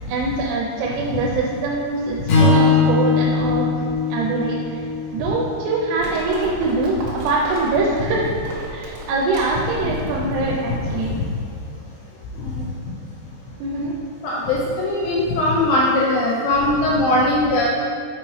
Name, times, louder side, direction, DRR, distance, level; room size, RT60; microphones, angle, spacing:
voice 1, 0.1-3.7 4.1-4.8 5.1-8.2 8.7-11.1 13.6-14.0, right 3 dB, 90° right, -3 dB, 3.2 m, -23 dB
voice 2, 0.9-1.2 9.8-9.9 10.4-10.5 10.8-11.3 12.4-13.0 14.2-17.7, left 2 dB, 85° left, -4 dB, 2.5 m, -21 dB
Strum, 2.3-6.6, left 4 dB, 70° left, 2.2 m, -20 dB
Livestock farm animals working animals, 6.0-11.2, right 1 dB, 70° right, 3.0 m, -35 dB
7.3 x 6.1 x 3.1 m, 2.4 s
omnidirectional pair, 5.5 m